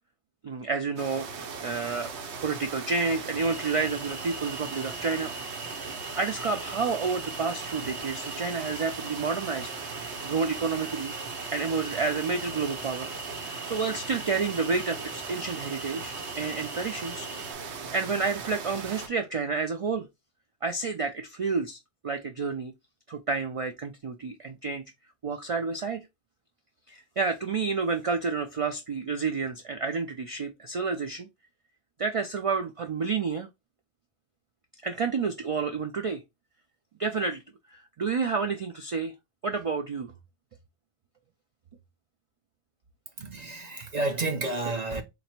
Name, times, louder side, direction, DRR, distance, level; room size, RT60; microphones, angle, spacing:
voice 1, 0.4-2.1 2.4-5.3 5.7-5.9 6.2-9.7 10.0-11.1 11.5-13.1 13.7-17.3 17.9-20.1 20.6-21.8 22.0-22.7 23.1-24.8 25.2-26.1 26.9-31.3 32.0-33.5 34.8-36.2 37.0-37.4 37.7-39.1 39.4-40.1, right 4 dB, 65° right, 0.3 m, -30 dB
sound 1, 1.0-19.1, right 5 dB, 80° right, 1.0 m, -38 dB
sound 2, 3.4-17.5, equal, 5° left, 0.4 m, -42 dB
voice 2, 43.2-45.0, right 2 dB, 45° right, 0.7 m, -30 dB
3.9 x 2.1 x 4.2 m
omnidirectional pair, 1.1 m